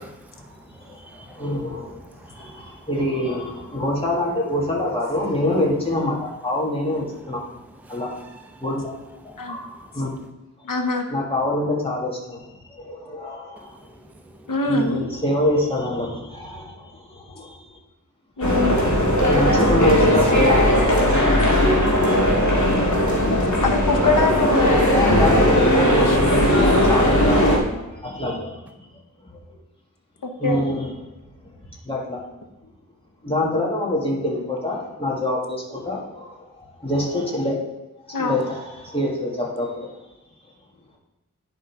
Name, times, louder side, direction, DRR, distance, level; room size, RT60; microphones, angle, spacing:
voice 1, 0.0-2.9 3.7-3.8 7.1-8.7 9.1-10.3 13.6-14.9, right 1 dB, 5° right, 4 dB, 0.7 m, -49 dB
voice 2, 0.7-7.4 7.9-8.1 8.6-8.9 9.2-10.1 11.1-13.9 14.7-17.8 18.9-23.0 24.7-28.9 29.3-29.6 30.4-31.1 31.4-31.6 31.8-32.2 32.6-32.7 33.2-37.6 38.1-40.0, left 1 dB, 15° left, -4 dB, 2.0 m, -26 dB
voice 3, 10.6-11.0 14.5-15.1 18.4-18.8 23.6-24.9 26.1-26.2 30.2-30.6 38.1-38.4, left 3 dB, 90° left, 4 dB, 0.9 m, -23 dB
sound 1, 18.4-27.6, equal, 65° left, 2.1 m, -18 dB
10.5 x 3.8 x 4.7 m, 1.0 s
wide cardioid pair, 50°, 32 cm